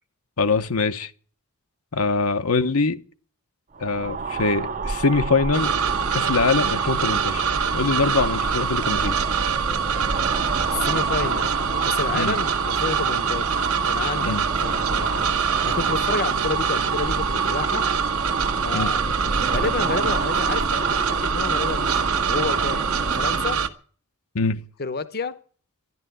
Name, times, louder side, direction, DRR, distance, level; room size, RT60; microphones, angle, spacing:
voice 1, 0.4-1.1 1.9-3.0 3.8-5.7 6.1-7.4 7.7-9.1 12.1-12.4 14.2-14.5 18.7-18.9 24.3-24.6, left 4 dB, 80° left, 1.0 m, -23 dB
sound 1, 3.7-23.6, right 4 dB, 40° right, 0.8 m, -30 dB
sound 2, 5.5-23.7, right 6 dB, 80° right, 1.3 m, -24 dB
voice 2, 10.7-11.5 11.8-13.5 13.8-15.3 15.6-17.8 18.6-19.0 19.4-23.6 24.8-25.4, left 4 dB, 50° left, 0.9 m, -30 dB
12.5 x 11.0 x 9.2 m
head